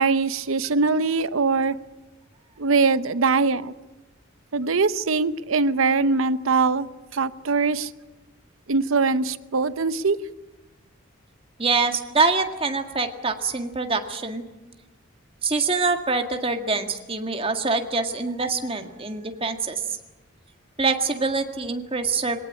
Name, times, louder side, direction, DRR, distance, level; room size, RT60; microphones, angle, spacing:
voice 1, 0.0-1.7 2.6-3.7 4.5-6.9 7.1-7.9 8.7-10.2, right 4 dB, 80° right, 14 dB, 0.9 m, -22 dB
voice 2, 11.6-14.4 15.4-19.8 20.8-22.4, right 4 dB, 25° right, 5 dB, 1.8 m, -25 dB
22.0 x 18.0 x 9.9 m, 1.1 s
head